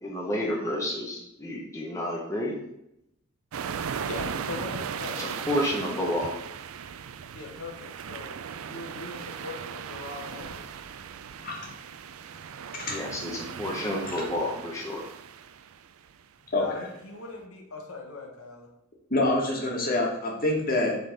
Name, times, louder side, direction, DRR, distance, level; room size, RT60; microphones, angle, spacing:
voice 1, 0.0-2.5 5.2-6.3 12.9-15.0, left 1 dB, 15° left, -3 dB, 1.0 m, -30 dB
sound 1, 3.5-16.1, right 7 dB, 70° right, 0.4 m, -37 dB
voice 2, 4.1-5.6 7.3-8.3 8.6-10.7 16.6-18.7, left 3 dB, 75° left, 1 dB, 1.5 m, -40 dB
voice 3, 16.5-16.8 19.1-21.0, left 2 dB, 40° left, -1 dB, 1.7 m, -26 dB
7.7 x 3.9 x 5.2 m, 0.82 s
head